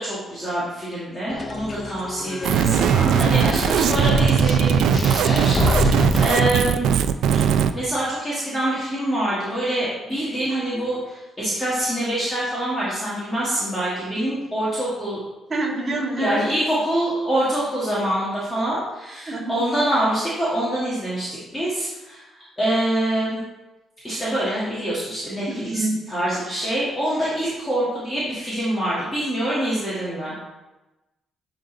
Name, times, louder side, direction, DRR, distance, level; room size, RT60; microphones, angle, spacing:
voice 1, 0.0-6.9 7.7-15.2 16.2-22.2 22.6-23.4 24.0-30.4, right 1 dB, 10° left, -9 dB, 1.9 m, -25 dB
sound 1, 1.3-6.3, left 3 dB, 30° left, 0.5 m, -27 dB
sound 2, 2.4-7.7, right 8 dB, 75° right, 0.4 m, -19 dB
voice 2, 15.5-16.6 19.3-19.6 25.5-26.0, right 2 dB, 25° right, -4 dB, 2.1 m, -26 dB
10.5 x 3.9 x 3.9 m, 1.1 s
cardioid pair, 145°, 0 cm